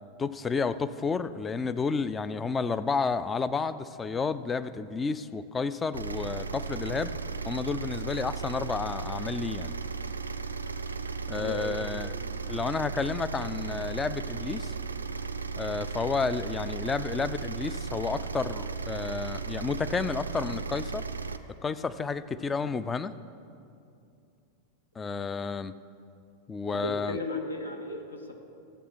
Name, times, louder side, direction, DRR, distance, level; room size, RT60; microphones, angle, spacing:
voice 1, 0.2-7.1 7.5-9.7 11.3-12.1 12.5-14.7 15.6-21.1 21.6-23.1 25.0-25.7 26.5-27.2, left 4 dB, 15° left, 13 dB, 0.4 m, -31 dB
sound 1, 5.9-21.4, right 5 dB, 75° right, 0.4 m, -35 dB
voice 2, 11.3-11.8 26.7-28.4, left 2 dB, 80° left, 3 dB, 1.1 m, -35 dB
13.5 x 7.8 x 5.9 m, 2.6 s
figure-of-eight pair, 90°, 0 cm